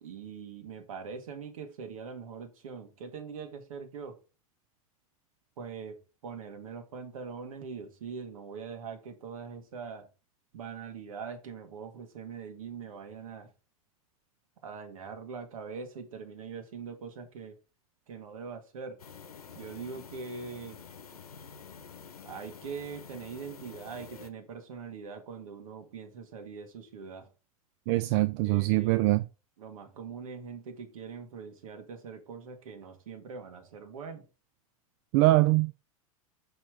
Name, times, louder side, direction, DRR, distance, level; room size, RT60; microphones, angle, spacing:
voice 1, 0.0-4.2 5.6-10.1 10.5-13.5 14.6-17.6 18.1-19.0 19.5-20.8 22.2-27.3 28.1-29.0 29.6-34.3, right 5 dB, 70° right, 2.0 m, -42 dB
sound 1, 19.0-24.3, left 6 dB, 85° left, 0.9 m, -48 dB
voice 2, 27.9-29.2 35.1-35.7, right 19 dB, 45° right, 0.5 m, -23 dB
6.0 x 5.9 x 4.8 m
figure-of-eight pair, 95°, 19 cm